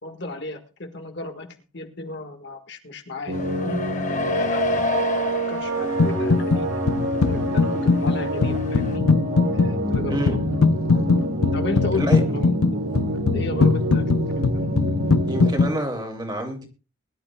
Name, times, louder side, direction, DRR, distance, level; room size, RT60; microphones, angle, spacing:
voice 1, 0.0-1.5 1.7-3.8 4.3-4.6 4.9-6.7 7.3-9.0 9.5-10.2 11.5-12.6 13.3-14.2, left 2 dB, 55° left, 5 dB, 1.7 m, -34 dB
sound 1, 3.3-9.0, left 3 dB, 35° left, 1.0 m, -30 dB
sound 2, 3.3-15.5, right 1 dB, 90° right, 3.2 m, -26 dB
sound 3, 6.0-6.6 6.9-15.7, left 4 dB, 85° left, 0.6 m, -21 dB
voice 2, 11.9-12.2 15.2-16.7, right 1 dB, 20° right, 2 dB, 2.6 m, -27 dB
22.0 x 12.0 x 2.3 m, 0.34 s
head